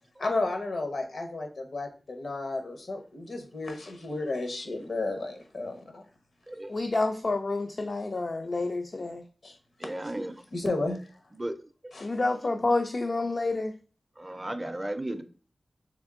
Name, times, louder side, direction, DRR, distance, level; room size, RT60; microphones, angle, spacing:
voice 1, 0.2-6.0 9.4-9.6 10.0-10.1 10.5-11.1 11.9-12.1, left 2 dB, 75° left, 0.9 m, -33 dB
voice 2, 6.7-9.2 12.0-13.7, left 2 dB, 50° left, 0.3 m, -28 dB
voice 3, 9.8-10.3 11.4-11.5 14.2-15.2, right 1 dB, 20° right, 0.4 m, -34 dB
3.5 x 3.3 x 3.6 m
wide cardioid pair, 105°, 0 cm